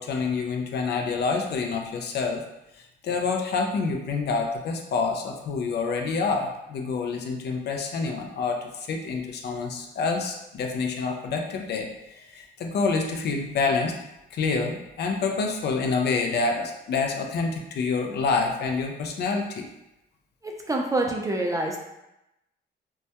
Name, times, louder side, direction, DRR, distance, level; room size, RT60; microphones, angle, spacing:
voice 1, 0.0-2.4 2.7-13.9 14.3-19.7, left 4 dB, 55° left, 2 dB, 0.4 m, -27 dB
voice 2, 20.4-21.8, right 2 dB, 15° right, 0 dB, 0.3 m, -27 dB
2.2 x 2.1 x 2.7 m, 0.90 s
cardioid pair, 90°, 20 cm